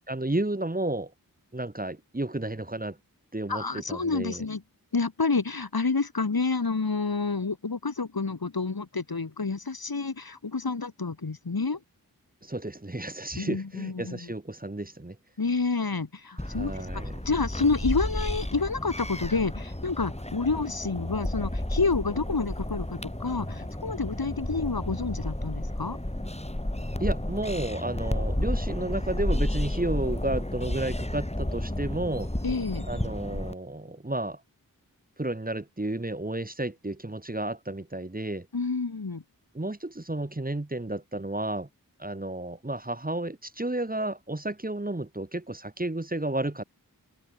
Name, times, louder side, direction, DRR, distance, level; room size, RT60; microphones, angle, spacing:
voice 1, 0.1-1.1 1.5-3.0 3.3-4.4 12.4-15.2 16.4-17.1 27.0-32.3 32.9-34.4 35.2-38.5 39.5-41.7 42.0-46.6, right 2 dB, 25° right, 1.9 m, -32 dB
voice 2, 3.5-4.6 4.9-11.8 13.4-14.3 15.4-26.0 32.4-32.9 38.5-39.2, left 4 dB, 80° left, 3.8 m, -29 dB
sound 1, 16.4-33.5, left 1 dB, 20° left, 5.9 m, -32 dB
wide cardioid pair, 50°, 36 cm